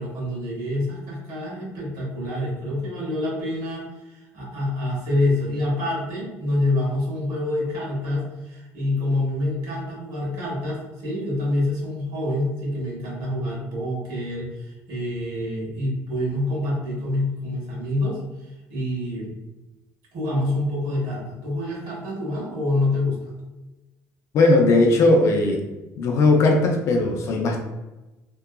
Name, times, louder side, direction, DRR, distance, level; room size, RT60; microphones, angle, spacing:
voice 1, 0.0-19.3 20.1-23.2, left 1 dB, 80° right, -5 dB, 1.3 m, -27 dB
voice 2, 24.3-25.6 26.0-27.6, left 2 dB, 50° left, 2 dB, 0.4 m, -18 dB
2.8 x 2.3 x 2.2 m, 1.1 s
cardioid pair, 155°, 6 cm